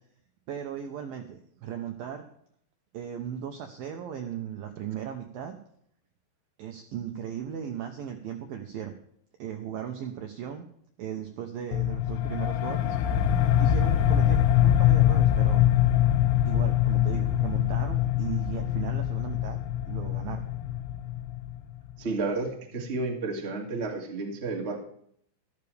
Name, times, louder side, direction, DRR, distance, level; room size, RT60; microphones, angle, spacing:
voice 1, 0.5-2.2 2.9-5.6 6.6-8.9 9.4-10.7 11.0-13.0 13.6-14.4 14.6-15.6 16.4-19.6 19.9-20.5, right 9 dB, 80° right, 4 dB, 2.1 m, -37 dB
sound 1, 11.7-21.9, left 11 dB, 80° left, 2.3 m, -24 dB
voice 2, 22.0-24.7, right 3 dB, 40° right, -1 dB, 0.8 m, -31 dB
14.0 x 12.5 x 3.4 m, 0.67 s
omnidirectional pair, 5.3 m